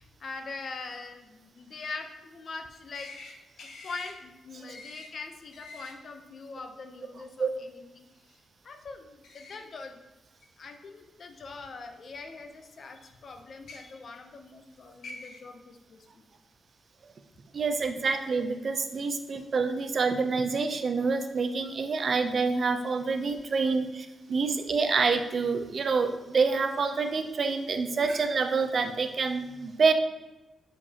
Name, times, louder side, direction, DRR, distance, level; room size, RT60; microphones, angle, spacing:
voice 1, 0.0-3.1 3.6-8.4 8.6-10.0 10.6-16.3, left 4 dB, 50° left, 6 dB, 0.6 m, -43 dB
sound 1, 2.9-3.3 3.6-4.1 4.7-5.1 5.5-5.9 9.2-9.6 10.4-10.5 11.7-11.8 13.5-13.8 14.7-14.8 15.0-15.4, left 3 dB, 80° left, 0.8 m, -45 dB
voice 2, 17.5-29.9, right 4 dB, 45° right, 7 dB, 0.5 m, -27 dB
6.5 x 5.1 x 2.8 m, 1.0 s
wide cardioid pair, 135°, 0 cm